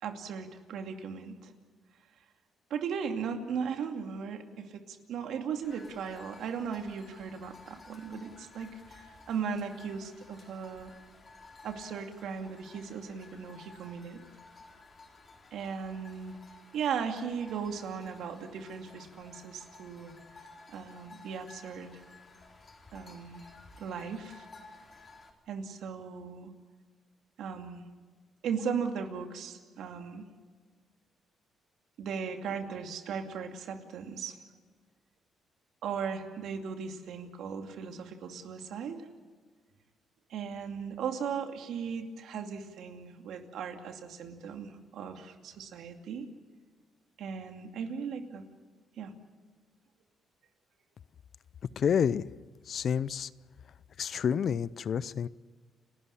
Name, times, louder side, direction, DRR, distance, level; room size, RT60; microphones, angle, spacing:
voice 1, 0.0-1.5 2.7-10.9 11.6-14.2 15.5-16.4 16.7-20.1 20.7-22.0 22.9-23.4 23.8-24.5 25.5-26.5 27.4-27.8 28.4-30.2 32.0-34.4 35.8-39.1 40.3-46.3 47.2-48.4 49.0-49.1, right 6 dB, 75° right, 5 dB, 2.5 m, -37 dB
sound 1, 5.6-25.3, left 3 dB, 35° left, 4.2 m, -54 dB
voice 2, 51.8-52.2 52.7-53.3 54.0-55.3, left 7 dB, 55° left, 19 dB, 0.6 m, -29 dB
30.0 x 13.0 x 9.9 m, 1.5 s
cardioid pair, 90°, 0 cm